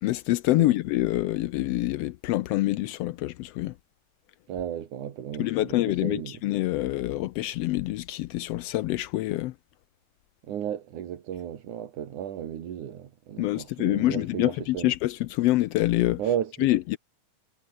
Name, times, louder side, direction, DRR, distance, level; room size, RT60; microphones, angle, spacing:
voice 1, 0.0-3.7 5.4-9.5 13.4-16.2 16.6-17.0, left 17 dB, 80° left, 1.4 m, -26 dB
voice 2, 4.5-6.4 10.4-14.9 16.2-16.7, right 10 dB, 85° right, 3.4 m, -34 dB
omnidirectional pair, 3.4 m